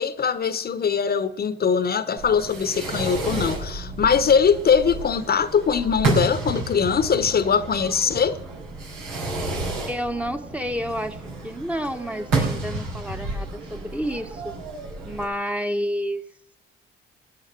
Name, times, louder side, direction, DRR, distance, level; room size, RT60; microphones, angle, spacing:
voice 1, 0.0-8.4, left 6 dB, 45° left, 1.0 m, -21 dB
Fireworks, 2.2-15.2, right 3 dB, 90° right, 5.0 m, -31 dB
voice 2, 9.9-14.5 15.0-16.2, equal, 5° right, 1.2 m, -30 dB
16.5 x 10.5 x 6.7 m
supercardioid pair, 60°, 21 cm